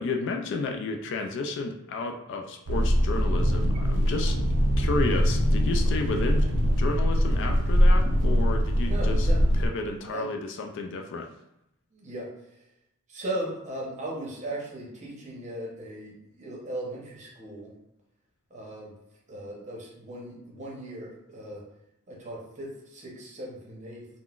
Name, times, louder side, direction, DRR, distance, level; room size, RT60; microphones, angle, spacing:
voice 1, 0.0-4.4 4.8-9.3 9.6-11.3, left 3 dB, 55° left, 4 dB, 0.3 m, -32 dB
sound 1, 2.7-9.7, equal, 75° right, 0.5 m, -22 dB
voice 2, 8.7-9.4 9.9-10.6 11.9-12.6 13.1-17.7 18.5-18.9 19.3-21.6 22.1-24.1, right 1 dB, 30° right, -3 dB, 0.8 m, -38 dB
3.8 x 2.1 x 2.3 m, 0.82 s
head